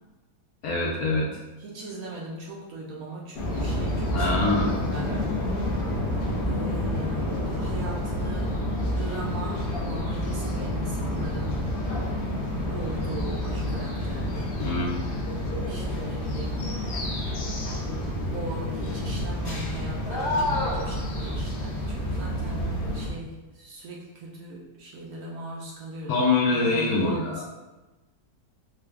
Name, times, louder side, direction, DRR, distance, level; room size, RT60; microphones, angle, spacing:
voice 1, 0.6-1.4 4.1-4.8 14.6-14.9 26.1-27.4, left 3 dB, 70° left, -4 dB, 1.1 m, -24 dB
voice 2, 1.6-5.2 6.5-11.7 12.7-14.5 15.6-17.4 18.3-26.3 26.5-27.4, right 2 dB, 70° right, -3 dB, 1.0 m, -39 dB
sound 1, 3.3-23.1, left 1 dB, 50° left, 0.6 m, -29 dB
3.8 x 2.3 x 3.3 m, 1.1 s
omnidirectional pair, 1.7 m